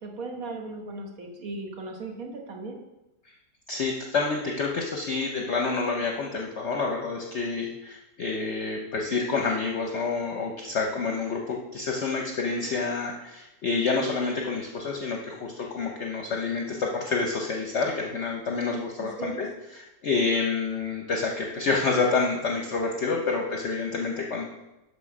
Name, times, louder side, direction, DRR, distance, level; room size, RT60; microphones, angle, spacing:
voice 1, 0.0-2.8 19.0-19.4, right 3 dB, 60° right, 2 dB, 1.6 m, -37 dB
voice 2, 3.7-19.5 19.7-24.4, left 4 dB, 55° left, 1 dB, 0.9 m, -28 dB
6.0 x 5.5 x 6.0 m, 0.99 s
omnidirectional pair, 1.7 m